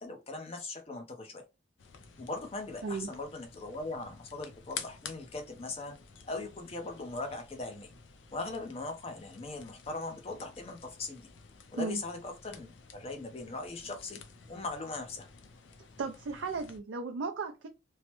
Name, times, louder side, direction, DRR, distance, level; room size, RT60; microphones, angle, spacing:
voice 1, 0.0-1.4 2.2-5.9 6.2-7.9 8.3-11.3 11.7-14.2 14.5-15.3, left 3 dB, 30° left, 0.5 m, -40 dB
sound 1, 1.8-16.8, left 6 dB, 75° left, 0.5 m, -51 dB
voice 2, 16.0-17.7, right 4 dB, 85° right, 0.4 m, -35 dB
3.1 x 2.0 x 2.9 m
head